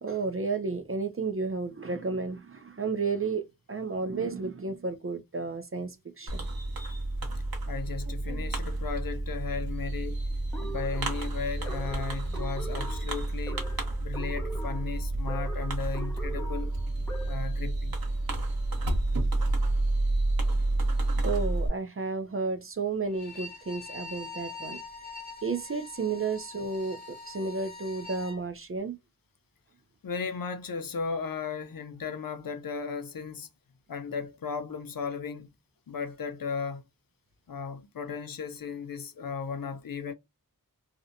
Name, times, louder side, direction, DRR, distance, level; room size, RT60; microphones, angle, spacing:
voice 1, 0.0-6.5 21.2-24.8 25.4-29.0, right 4 dB, 35° right, 0.5 m, -32 dB
Fireworks, 6.3-21.7, right 2 dB, 70° right, 1.0 m, -30 dB
voice 2, 7.7-10.2 10.6-13.7 14.0-16.7 17.2-18.0 30.0-33.5 33.9-35.5 35.9-36.8 37.5-40.1, left 5 dB, 65° left, 0.5 m, -36 dB
sound 1, 10.5-17.6, right 1 dB, 5° left, 0.7 m, -42 dB
Bowed string instrument, 23.1-28.4, left 3 dB, 25° left, 1.1 m, -43 dB
2.7 x 2.1 x 2.5 m
wide cardioid pair, 45°, 36 cm